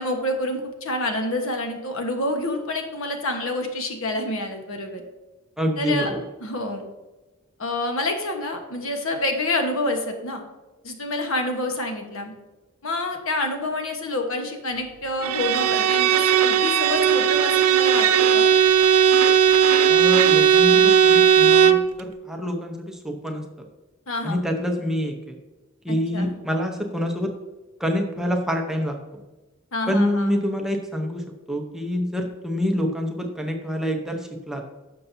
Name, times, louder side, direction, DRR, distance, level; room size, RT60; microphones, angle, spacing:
voice 1, 0.0-5.0 5.8-6.1 6.4-6.8 7.6-10.4 10.8-12.3 12.8-18.5 24.1-24.4 25.9-26.3 29.7-30.3, left 2 dB, 70° left, 4 dB, 1.3 m, -28 dB
voice 2, 5.6-6.2 19.9-23.4 24.2-25.3 25.8-27.3 27.8-29.2 29.9-34.6, equal, ahead, 2 dB, 0.9 m, -26 dB
Bowed string instrument, 15.2-21.9, right 8 dB, 75° right, 0.5 m, -17 dB
11.5 x 6.8 x 2.8 m, 1.1 s
head